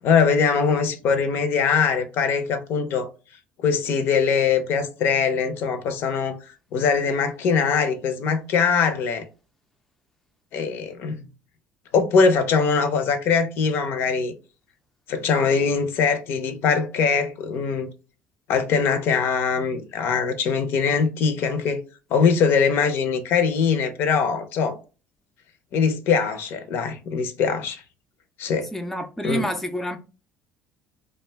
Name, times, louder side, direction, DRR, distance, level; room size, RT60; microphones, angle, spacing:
voice 1, 0.0-3.1 3.6-6.4 6.7-9.2 10.5-11.3 11.9-14.3 15.1-17.9 18.5-21.8 22.1-24.8 25.7-27.8 28.4-28.7 29.2-29.5, left 5 dB, 65° left, 0.5 m, -22 dB
voice 2, 28.7-30.0, right 1 dB, 5° left, 0.4 m, -28 dB
2.4 x 2.2 x 3.3 m
supercardioid pair, 95°, 4 cm